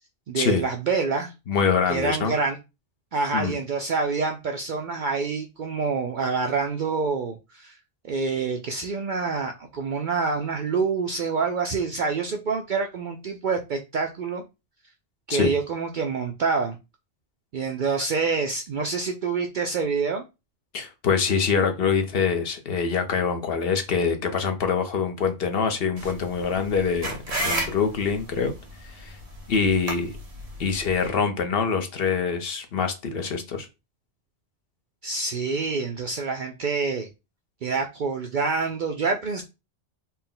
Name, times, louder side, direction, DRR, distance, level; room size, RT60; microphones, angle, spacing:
voice 1, 0.3-1.3 1.9-2.6 3.1-7.8 8.0-14.4 15.3-16.8 17.5-20.2 35.0-37.1 37.6-39.4, right 4 dB, 60° right, 3 dB, 0.5 m, -27 dB
voice 2, 1.5-2.3 3.3-3.6 15.3-15.5 20.7-28.5 28.8-29.2 29.5-30.1 30.6-33.7, left 5 dB, 60° left, 6 dB, 0.8 m, -25 dB
sound 1, 26.0-31.1, right 1 dB, 35° right, 1.1 m, -33 dB
4.2 x 2.1 x 3.7 m, 0.26 s
omnidirectional pair, 1.2 m